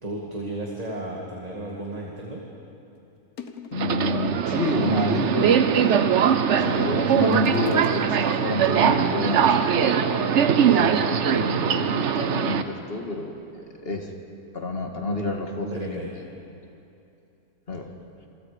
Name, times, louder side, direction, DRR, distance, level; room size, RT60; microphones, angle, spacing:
voice 1, 0.0-2.5 6.5-7.1 15.6-16.1, right 1 dB, 25° right, -2 dB, 2.1 m, -34 dB
sound 1, 2.2-2.3 3.0-3.1 3.4-4.2 4.7-5.5 6.1-6.8 7.0-8.6 9.4-9.5, left 5 dB, 70° left, 1.7 m, -39 dB
voice 2, 3.7-6.3 6.5-14.1 14.5-16.0 17.7-17.9, left 2 dB, 40° left, 3 dB, 2.0 m, -29 dB
Subway metro underground, 3.7-12.6, right 7 dB, 55° right, 1.0 m, -21 dB
27.5 x 23.5 x 5.1 m, 2.8 s
omnidirectional pair, 1.6 m